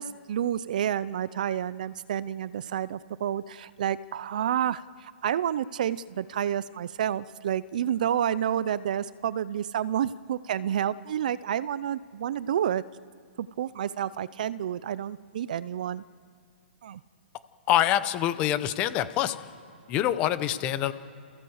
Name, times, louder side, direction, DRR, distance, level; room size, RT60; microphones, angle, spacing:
voice 1, 0.0-12.8 13.4-16.0 16.8-17.0, right 10 dB, 45° right, 18 dB, 0.5 m, -29 dB
voice 2, 17.7-19.4 19.9-20.9, left 12 dB, 20° left, 13 dB, 0.8 m, -25 dB
28.5 x 15.5 x 8.0 m, 2.3 s
hypercardioid pair, 170°, 6 cm